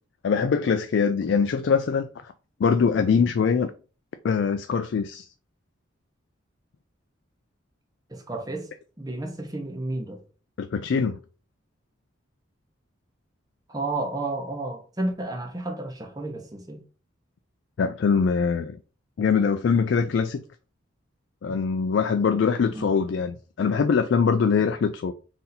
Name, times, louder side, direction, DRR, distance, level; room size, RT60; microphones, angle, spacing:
voice 1, 0.2-2.1 2.6-3.7 4.2-5.3 10.6-11.2 17.8-18.8 19.2-20.4 21.4-25.1, left 5 dB, 60° left, 0.3 m, -23 dB
voice 2, 8.1-8.7 9.0-10.2 13.7-16.8 22.7-23.0, right 2 dB, 20° right, 0.8 m, -31 dB
4.1 x 2.7 x 3.9 m
head